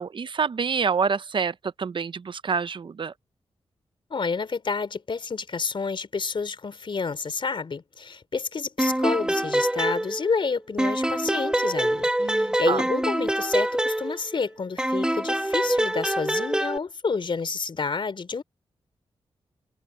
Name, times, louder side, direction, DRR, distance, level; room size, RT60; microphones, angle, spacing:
voice 1, 0.0-3.1 12.2-12.8, right 5 dB, 55° right, 0.7 m, -27 dB
voice 2, 4.1-18.4, left 5 dB, 55° left, 4.0 m, -29 dB
sound 1, 8.8-10.5 10.8-14.4 14.8-16.8, right 1 dB, 10° right, 1.1 m, -25 dB
cardioid pair, 70°, 10 cm